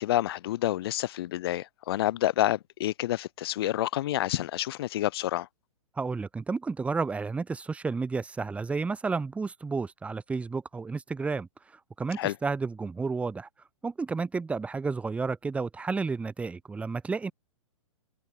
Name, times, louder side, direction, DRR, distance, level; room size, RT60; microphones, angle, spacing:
voice 1, 0.0-5.5 12.2-12.4, left 14 dB, 45° left, 0.6 m, -28 dB
voice 2, 6.0-11.5 12.0-13.5 13.8-17.3, right 4 dB, 5° right, 0.9 m, -31 dB
figure-of-eight pair, 110°, 17 cm